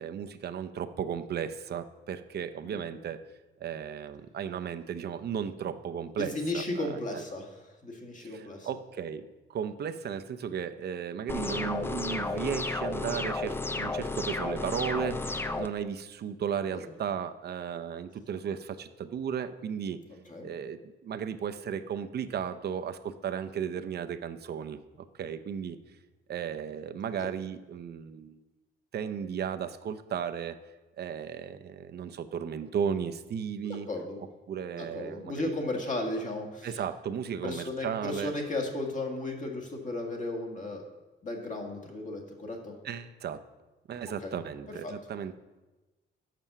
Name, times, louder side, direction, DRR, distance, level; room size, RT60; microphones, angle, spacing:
voice 1, 0.0-3.2 3.6-7.2 8.2-20.0 20.4-25.8 26.3-28.4 28.9-30.6 31.0-33.9 34.5-35.6 36.6-38.3 42.8-43.4 43.9-45.3, right 8 dB, 55° right, 9 dB, 0.6 m, -35 dB
voice 2, 6.2-8.7 16.7-16.9 20.1-20.5 27.2-27.3 33.6-34.2 34.7-36.8 37.4-40.8 41.2-42.7 44.2-44.3 44.7-44.9, left 2 dB, 40° left, 2 dB, 1.7 m, -35 dB
sound 1, 11.3-15.7, left 2 dB, 10° left, 0.4 m, -32 dB
7.5 x 6.0 x 6.7 m, 1.1 s
cardioid pair, 90°, 20 cm